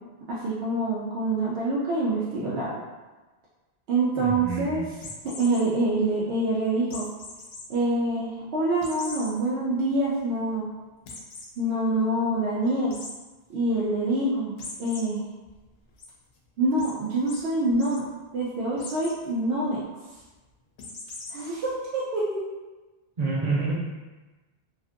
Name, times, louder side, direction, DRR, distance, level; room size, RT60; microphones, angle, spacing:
voice 1, 0.3-2.7 3.9-4.8 5.4-7.1 7.7-10.6 11.6-13.0 13.5-14.5 14.8-15.2 16.6-18.1 18.3-19.8 21.3-22.4, right 2 dB, 75° right, -7 dB, 0.8 m, -26 dB
voice 2, 4.2-4.9 23.2-23.7, right 3 dB, 45° right, -6 dB, 0.8 m, -28 dB
sound 1, 5.0-5.6 6.9-7.6 8.1-8.2 8.8-9.3 9.8-9.9 10.2-10.3 11.1-11.5 12.9-13.1 14.6-15.0 15.5-16.1 16.8-16.9 17.3-17.4 17.7-18.0 18.8-19.2 20.8-21.5, left 3 dB, 70° left, 0.8 m, -40 dB
2.5 x 2.5 x 2.5 m, 1.2 s
omnidirectional pair, 1.1 m